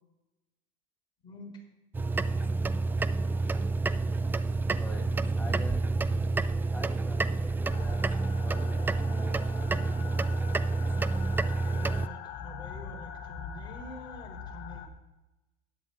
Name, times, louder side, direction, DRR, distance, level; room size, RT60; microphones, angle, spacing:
voice 1, 1.2-1.6 11.6-14.9, left 3 dB, 25° left, -1 dB, 3.8 m, -47 dB
sound 1, 1.9-12.1, right 3 dB, 10° right, 0.4 m, -29 dB
voice 2, 4.8-5.8 6.7-8.0 8.4-9.5, left 1 dB, 5° left, -1 dB, 1.2 m, -45 dB
sound 2, 7.7-14.9, left 7 dB, 55° left, 1.3 m, -43 dB
15.0 x 10.5 x 2.6 m, 1.0 s
supercardioid pair, 125°, 19 cm